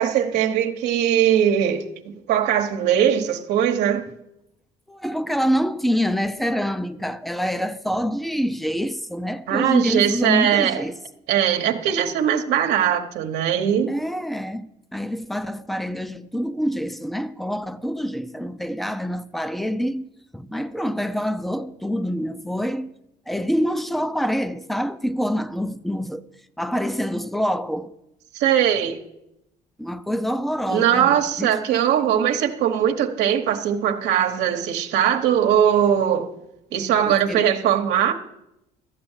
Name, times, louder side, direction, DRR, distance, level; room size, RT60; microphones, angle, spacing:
voice 1, 0.0-4.1 9.5-10.8 11.3-13.9 28.3-29.0 30.7-36.3 36.7-38.1, right 9 dB, 85° right, 1.1 m, -20 dB
voice 2, 4.9-11.0 13.9-20.1 20.3-22.9 23.3-26.3 26.6-28.0 29.8-31.5 31.9-32.0 37.1-37.5, equal, ahead, 0.6 m, -26 dB
13.0 x 7.8 x 7.3 m
cardioid pair, 110°, 17 cm